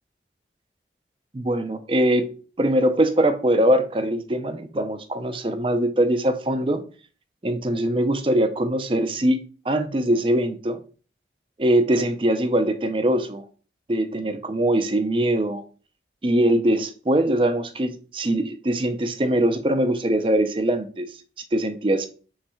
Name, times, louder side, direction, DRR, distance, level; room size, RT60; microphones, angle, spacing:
voice 1, 1.3-2.3 2.6-6.8 7.4-9.4 9.7-10.8 11.6-13.5 13.9-15.6 16.2-21.1 21.5-22.1, right 1 dB, 30° right, 0.5 m, -22 dB
3.6 x 3.2 x 4.3 m
head